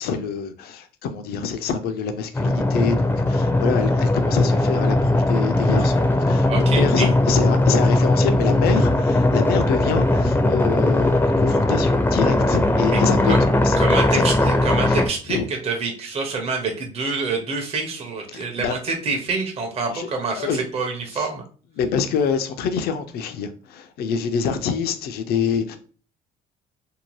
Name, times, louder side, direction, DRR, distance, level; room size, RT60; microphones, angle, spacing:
voice 1, 0.0-13.3 13.6-13.8 14.1-14.2 14.9-15.0 15.3-15.4 18.3-18.8 19.9-20.1 20.4-20.6 21.1-21.3 21.8-25.8, left 6 dB, 65° left, 0.5 m, -26 dB
sound 1, 2.3-15.1, left 2 dB, 10° left, 0.5 m, -19 dB
voice 2, 6.5-7.1 12.9-13.0 13.3-13.4 13.8-21.4, right 4 dB, 35° right, 0.7 m, -27 dB
2.7 x 2.1 x 3.0 m
cardioid pair, 110°, 17 cm